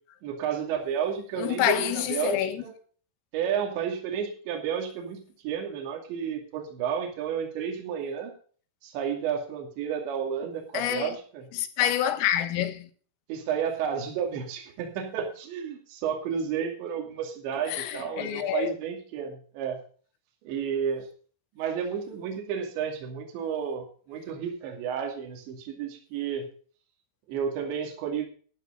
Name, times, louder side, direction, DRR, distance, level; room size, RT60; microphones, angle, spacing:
voice 1, 0.2-2.7 3.3-8.3 8.8-11.5 13.3-19.8 20.4-21.1 21.6-26.5 27.3-28.3, right 7 dB, 65° right, 4.5 m, -31 dB
voice 2, 1.4-2.6 10.7-11.2 11.5-12.9 17.7-18.7, left 11 dB, 80° left, 4.0 m, -27 dB
12.5 x 12.5 x 3.9 m
omnidirectional pair, 5.9 m